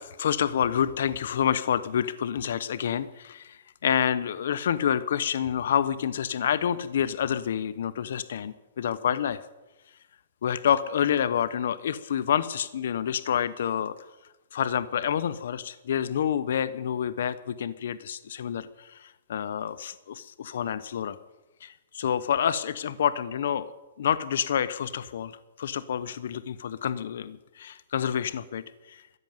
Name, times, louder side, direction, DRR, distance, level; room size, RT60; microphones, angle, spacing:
voice 1, 0.0-9.4 10.4-14.0 14.5-21.2 21.6-23.7 24.0-29.0, left 9 dB, 65° left, 15 dB, 0.8 m, -28 dB
13.5 x 11.0 x 9.4 m, 1.1 s
hypercardioid pair, 165°, 0 cm